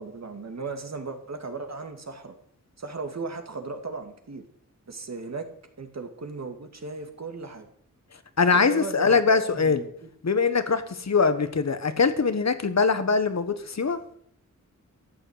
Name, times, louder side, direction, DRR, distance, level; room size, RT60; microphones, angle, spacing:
voice 1, 0.0-2.4 2.8-4.4 4.9-5.5 5.8-7.7 8.5-10.1, right 4 dB, 55° right, 5 dB, 2.2 m, -36 dB
voice 2, 8.4-9.8 10.2-14.0, left 4 dB, 55° left, 10 dB, 1.3 m, -22 dB
13.5 x 8.8 x 8.1 m, 0.66 s
wide cardioid pair, 105°, 32 cm